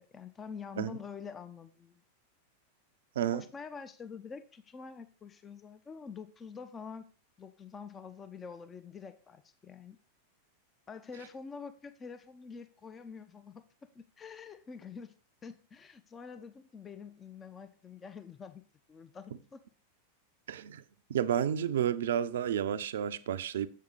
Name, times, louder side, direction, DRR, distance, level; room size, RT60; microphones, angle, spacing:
voice 1, 0.0-2.0 3.3-7.1 7.4-10.0 10.9-13.6 13.9-15.2 15.4-19.6, left 5 dB, 20° left, 0.5 m, -46 dB
voice 2, 20.5-20.8 21.1-23.7, right 9 dB, 60° right, 0.5 m, -31 dB
7.1 x 6.4 x 4.0 m
figure-of-eight pair, 90°, 0 cm